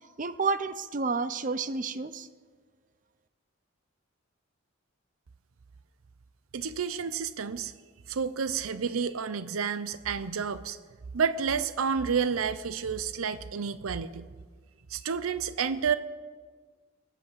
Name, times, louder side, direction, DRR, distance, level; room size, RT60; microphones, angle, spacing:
voice 1, 0.2-2.3, right 4 dB, 40° right, 13 dB, 0.6 m, -30 dB
voice 2, 6.5-7.7 8.1-10.8 11.1-14.2 14.9-16.0, right 6 dB, 85° right, 14 dB, 0.6 m, -30 dB
19.5 x 8.3 x 7.4 m, 1.5 s
head